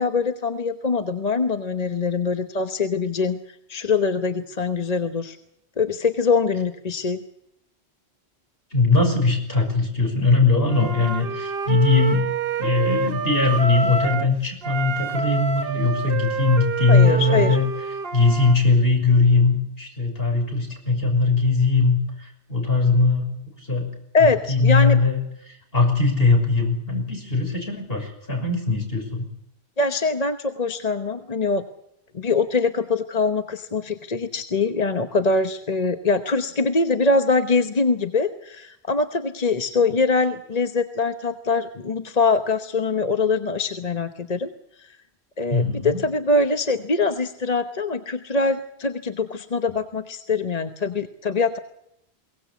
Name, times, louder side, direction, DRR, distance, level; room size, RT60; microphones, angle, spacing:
voice 1, 0.0-5.4 5.8-7.2 16.9-17.6 24.1-25.0 29.8-31.6 32.1-44.5 44.8-44.9 45.4-51.6, left 4 dB, 40° left, 8 dB, 1.1 m, -23 dB
voice 2, 8.7-12.3 12.6-17.6 18.1-23.4 23.7-23.9 24.5-25.2 25.5-29.2 45.5-46.0, left 3 dB, 60° left, 3 dB, 6.4 m, -20 dB
Wind instrument woodwind instrument, 10.7-14.3 14.6-18.6, right 5 dB, 60° right, 1.3 m, -27 dB
22.5 x 18.5 x 8.4 m, 0.76 s
omnidirectional pair, 1.1 m